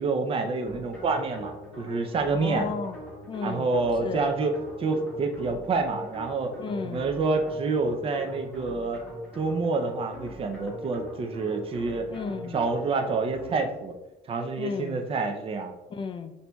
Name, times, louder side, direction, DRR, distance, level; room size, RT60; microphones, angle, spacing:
voice 1, 0.0-2.7 3.4-4.5 4.8-6.5 6.8-9.0 9.4-12.1 12.5-13.9 14.3-15.7, right 3 dB, 35° right, 5 dB, 0.5 m, -27 dB
sound 1, 0.7-13.9, equal, 5° left, 1.4 m, -42 dB
voice 2, 2.3-3.0 3.3-3.7 4.0-4.2 6.6-7.0 12.1-12.6 14.6-15.0 15.9-16.3, left 5 dB, 30° left, 8 dB, 0.4 m, -33 dB
5.9 x 2.6 x 2.2 m, 1.0 s
cardioid pair, 110°, 17 cm